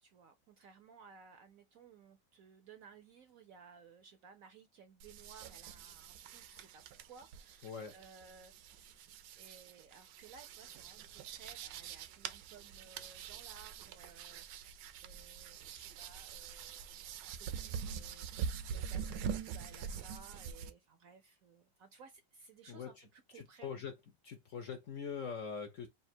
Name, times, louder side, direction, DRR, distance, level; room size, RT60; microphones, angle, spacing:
voice 1, 0.0-9.0 9.4-23.7, right 5 dB, 65° right, 0.9 m, -59 dB
sound 1, 5.0-20.7, right 7 dB, 80° right, 1.2 m, -45 dB
voice 2, 7.6-7.9 22.7-23.0 23.3-23.9 24.2-25.9, left 6 dB, 60° left, 0.8 m, -43 dB
3.5 x 2.5 x 4.3 m
omnidirectional pair, 1.9 m